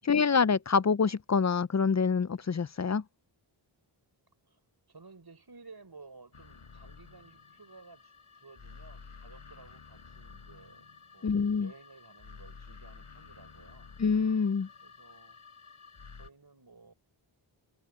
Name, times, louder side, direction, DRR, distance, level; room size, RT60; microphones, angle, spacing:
voice 1, 0.0-3.0 11.2-11.7 14.0-14.7, left 5 dB, 35° left, 0.5 m, -26 dB
voice 2, 4.9-13.9 14.8-15.4 16.1-16.9, right 3 dB, 50° right, 5.4 m, -55 dB
sound 1, 6.3-16.3, left 5 dB, 90° left, 5.4 m, -52 dB
wide cardioid pair, 80°, 50 cm